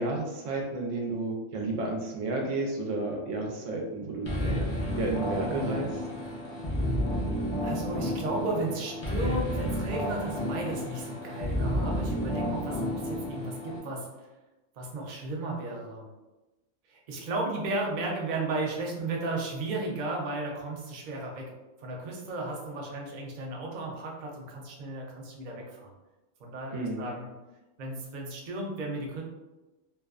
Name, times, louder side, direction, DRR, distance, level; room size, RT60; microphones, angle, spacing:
voice 1, 0.0-6.0 26.7-27.1, right 2 dB, 90° right, 0 dB, 1.0 m, -32 dB
sound 1, 4.3-13.8, equal, 35° left, 0.5 m, -31 dB
voice 2, 7.6-14.3 14.8-16.0 16.9-21.5 21.8-25.9 26.4-27.3 27.8-29.2, right 2 dB, 55° right, -1 dB, 0.5 m, -34 dB
2.6 x 2.2 x 2.3 m, 1.1 s
omnidirectional pair, 1.3 m